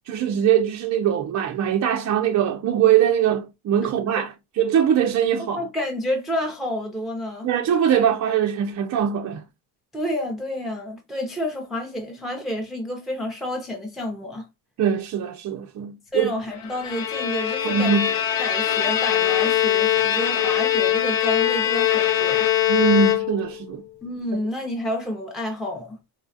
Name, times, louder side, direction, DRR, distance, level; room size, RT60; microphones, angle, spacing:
voice 1, 0.1-5.6 7.4-9.4 14.8-16.3 17.6-18.1 22.7-23.8, right 8 dB, 40° right, 0.4 m, -22 dB
voice 2, 5.5-7.5 9.9-14.5 16.1-18.0 18.4-22.5 24.0-26.0, left 1 dB, ahead, 0.6 m, -29 dB
Bowed string instrument, 16.6-23.6, left 11 dB, 70° left, 0.7 m, -22 dB
4.0 x 2.3 x 2.6 m
cardioid pair, 100°, 48 cm